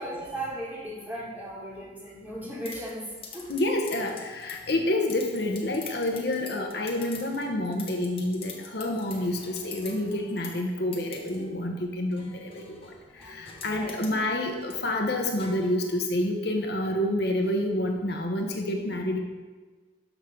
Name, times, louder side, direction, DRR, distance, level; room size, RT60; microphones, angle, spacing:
voice 1, 0.0-3.5 13.1-13.3 13.7-14.0, right 1 dB, 10° right, -7 dB, 2.9 m, -37 dB
sound 1, 2.7-16.2, left 5 dB, 30° left, 1.3 m, -46 dB
voice 2, 3.5-12.9 13.3-19.2, left 1 dB, 60° left, 2 dB, 1.1 m, -28 dB
13.0 x 5.9 x 3.9 m, 1.4 s
head